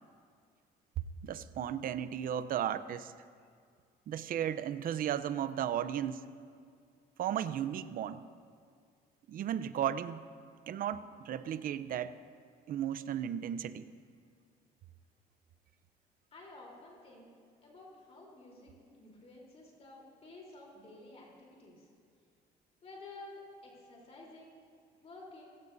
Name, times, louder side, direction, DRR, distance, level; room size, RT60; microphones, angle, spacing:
voice 1, 1.2-3.1 4.1-6.2 7.2-8.2 9.3-10.2 10.7-12.2 12.7-13.9, right 10 dB, 55° right, 13 dB, 0.7 m, -35 dB
voice 2, 16.3-17.3 17.6-21.9 22.8-24.6 25.0-25.4, left 2 dB, 40° left, -2 dB, 3.8 m, -52 dB
25.0 x 16.5 x 2.7 m, 2.2 s
cardioid pair, 110°, 17 cm